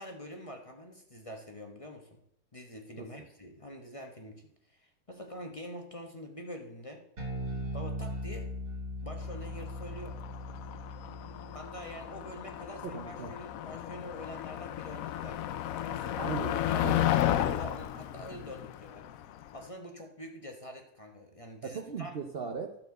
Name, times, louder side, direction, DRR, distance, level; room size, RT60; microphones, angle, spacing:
voice 1, 0.0-2.2 2.5-4.4 4.7-7.1 7.7-8.5 9.0-10.2 11.5-16.2 16.7-19.1 19.5-22.1, equal, 25° left, 3 dB, 1.0 m, -45 dB
Bass guitar, 7.2-13.6, equal, 75° right, 2.5 m, -40 dB
Motor vehicle (road), 9.3-19.6, left 12 dB, 75° left, 1.0 m, -33 dB
voice 2, 12.8-13.3 16.2-17.1 21.6-22.8, right 6 dB, 50° right, 5 dB, 0.8 m, -38 dB
12.0 x 4.5 x 6.5 m, 0.73 s
omnidirectional pair, 1.5 m